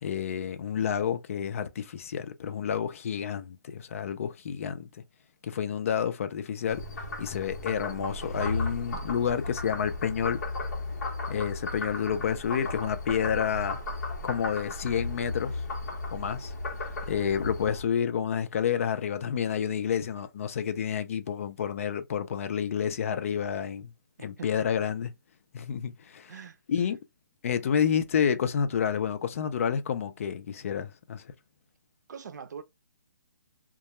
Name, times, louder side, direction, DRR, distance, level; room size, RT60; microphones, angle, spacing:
voice 1, 0.0-4.9 5.4-6.8 7.2-10.4 11.3-13.8 14.2-15.6 16.1-16.5 17.1-23.9 24.2-25.1 25.5-26.3 26.7-27.0 27.4-31.2, left 8 dB, 45° left, 0.4 m, -29 dB
Frog, 6.7-17.8, left 2 dB, 60° left, 1.0 m, -35 dB
voice 2, 24.2-24.7 26.3-26.6 32.1-32.6, right 6 dB, 65° right, 0.5 m, -43 dB
2.3 x 2.1 x 2.8 m
hypercardioid pair, 160°, 10 cm